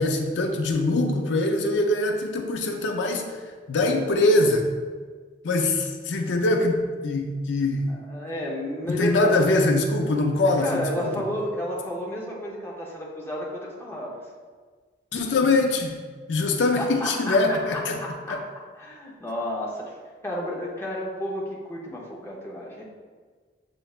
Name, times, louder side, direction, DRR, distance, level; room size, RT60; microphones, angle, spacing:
voice 1, 0.0-3.3 3.7-4.7 5.4-7.9 8.9-11.1 15.1-15.9 16.3-18.0 18.3-18.4, left 2 dB, 80° left, 4 dB, 0.4 m, -23 dB
voice 2, 7.9-9.4 10.4-14.2 15.4-15.6 16.8-18.4 18.7-19.9 20.2-22.8, equal, 15° left, -4 dB, 0.7 m, -31 dB
6.7 x 3.2 x 2.4 m, 1.5 s
head